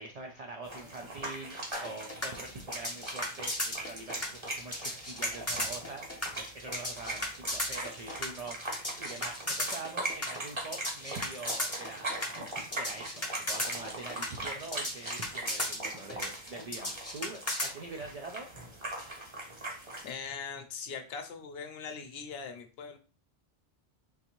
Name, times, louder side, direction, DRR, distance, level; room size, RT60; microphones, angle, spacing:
voice 1, 0.0-12.4 12.7-18.6, right 3 dB, 65° right, 3 dB, 0.3 m, -44 dB
sound 1, 0.6-20.1, right 1 dB, 30° right, 0.8 m, -40 dB
sound 2, 1.7-17.7, left 1 dB, 15° left, 0.6 m, -35 dB
voice 2, 20.0-23.0, left 6 dB, 65° left, 7 dB, 0.8 m, -41 dB
3.8 x 2.6 x 2.9 m, 0.34 s
omnidirectional pair, 1.2 m